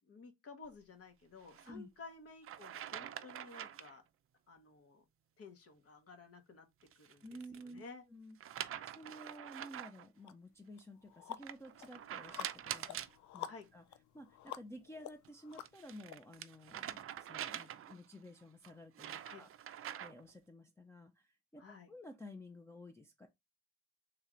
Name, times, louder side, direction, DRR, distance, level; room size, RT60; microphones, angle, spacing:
voice 1, 0.0-4.0 4.5-5.0 5.4-6.7 7.0-8.0 13.4-13.7 19.2-19.4 21.6-21.9, left 4 dB, 50° left, 1.1 m, -54 dB
sound 1, 1.4-1.7 2.4-4.0 6.8-7.7 8.4-10.1 11.4-13.2 15.2-18.1 18.6-20.3, right 10 dB, 50° right, 0.5 m, -45 dB
voice 2, 7.2-7.8 8.1-8.4 8.8-13.0 13.3-13.8 14.1-19.5 20.0-21.6 21.9-23.3, equal, 10° left, 0.5 m, -53 dB
sound 2, 10.2-10.3 10.8-16.2, left 11 dB, 75° left, 0.5 m, -49 dB
3.3 x 2.8 x 3.7 m
cardioid pair, 90°, 30 cm